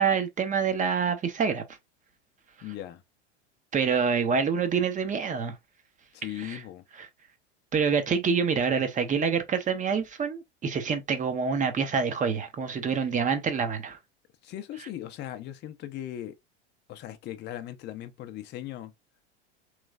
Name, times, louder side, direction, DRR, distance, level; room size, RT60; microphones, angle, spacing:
voice 1, 0.0-1.6 3.7-5.5 6.4-6.6 7.7-14.0, right 6 dB, 20° right, 0.8 m, -26 dB
voice 2, 2.6-3.0 6.1-6.8 14.4-16.4 16.9-18.9, left 12 dB, 30° left, 0.6 m, -38 dB
3.2 x 3.1 x 2.3 m
hypercardioid pair, 90°, 34 cm